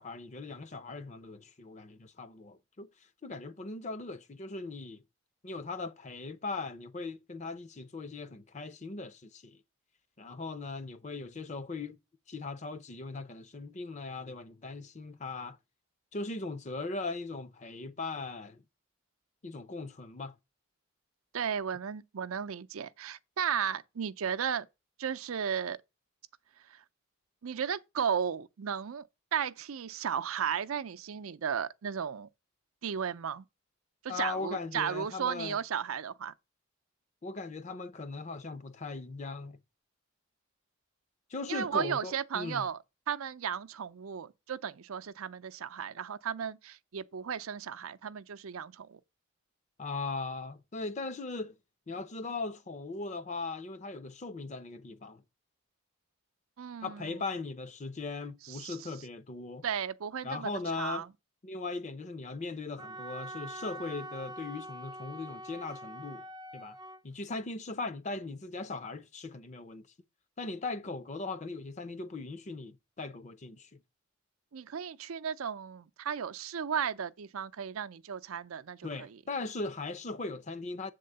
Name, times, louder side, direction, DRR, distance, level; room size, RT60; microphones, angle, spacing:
voice 1, 0.0-2.9 3.2-5.0 5.4-9.6 10.2-12.0 12.3-15.6 16.1-18.6 19.4-20.4 34.1-35.6 37.2-39.6 41.3-42.6 49.8-51.6 51.9-55.2 56.8-59.6 60.2-61.0 61.4-66.2 66.5-66.8 67.0-69.9 70.4-73.8 78.8-80.9, left 3 dB, 35° left, 0.5 m, -39 dB
voice 2, 21.3-24.7 25.0-25.8 26.6-26.8 27.4-29.1 29.3-32.3 32.8-33.5 34.0-36.3 41.5-42.8 43.1-49.0 56.6-57.2 58.4-58.9 59.6-60.5 60.8-61.1 74.5-79.2, right 7 dB, 80° right, 0.5 m, -35 dB
Wind instrument woodwind instrument, 62.8-67.0, right 1 dB, 20° right, 0.3 m, -44 dB
7.6 x 3.7 x 6.5 m
head